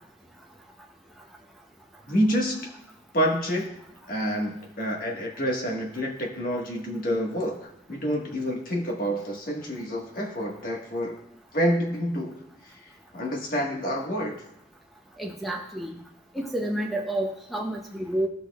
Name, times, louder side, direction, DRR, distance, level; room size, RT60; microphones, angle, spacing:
voice 1, 2.1-2.7 3.1-3.7 4.1-11.2 11.5-12.4 13.1-14.4, equal, 45° left, -1 dB, 1.5 m, -28 dB
voice 2, 15.2-16.0 16.3-18.3, right 1 dB, ahead, 0 dB, 0.6 m, -29 dB
14.5 x 6.3 x 2.3 m, 0.75 s
head